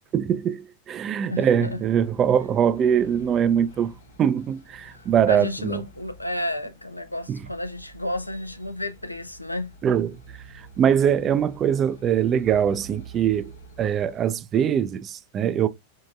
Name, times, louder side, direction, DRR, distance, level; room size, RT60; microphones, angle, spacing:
voice 1, 0.1-5.8 7.3-7.4 9.8-10.2 10.5-13.5 13.8-15.7, right 8 dB, 30° right, 0.5 m, -22 dB
voice 2, 1.3-1.8 4.9-9.7, left 1 dB, 85° left, 0.5 m, -32 dB
sound 1, 1.6-14.3, right 3 dB, 70° left, 1.1 m, -48 dB
4.6 x 4.2 x 2.5 m
figure-of-eight pair, 90°, 0 cm